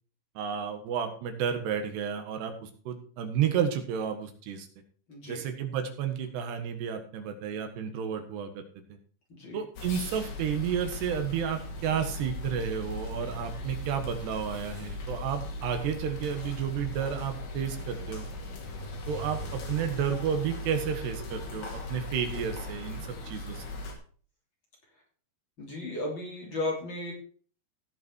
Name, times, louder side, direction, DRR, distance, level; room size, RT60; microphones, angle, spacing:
voice 1, 0.4-4.7 5.3-8.6 9.5-18.3 19.1-23.6, right 8 dB, 90° right, 7 dB, 3.7 m, -31 dB
voice 2, 5.1-5.4 9.3-9.6 25.6-27.1, left 2 dB, 30° left, -2 dB, 3.5 m, -35 dB
sound 1, 9.8-23.9, left 1 dB, 70° left, 4.4 m, -38 dB
16.5 x 6.2 x 4.6 m, 0.43 s
omnidirectional pair, 4.6 m